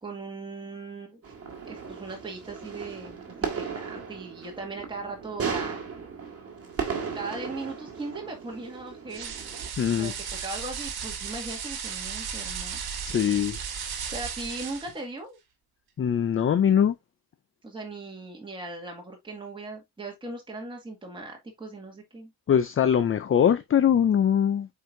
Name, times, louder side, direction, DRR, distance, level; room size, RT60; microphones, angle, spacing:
voice 1, 0.0-1.2 1.7-5.9 7.0-9.3 9.9-10.1 10.4-12.8 14.1-15.4 17.6-22.3, right 3 dB, 10° right, 2.0 m, -38 dB
sound 1, 1.2-9.7, right 6 dB, 35° right, 1.9 m, -36 dB
sound 2, 9.1-15.0, right 7 dB, 65° right, 1.5 m, -35 dB
voice 2, 9.8-10.1 13.1-13.6 16.0-16.9 22.5-24.7, left 8 dB, 35° left, 0.5 m, -22 dB
8.2 x 4.7 x 2.6 m
wide cardioid pair, 180°, 39 cm